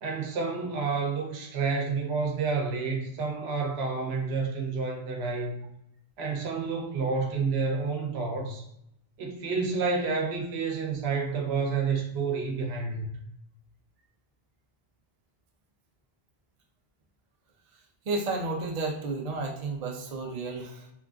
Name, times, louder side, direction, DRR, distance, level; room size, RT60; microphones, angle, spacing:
voice 1, 0.0-5.6 6.2-8.7 9.2-13.0, right 4 dB, 90° right, 1 dB, 0.9 m, -29 dB
voice 2, 17.7-20.9, right 3 dB, 45° right, 0 dB, 0.6 m, -32 dB
2.9 x 2.4 x 2.4 m, 0.78 s
omnidirectional pair, 1.0 m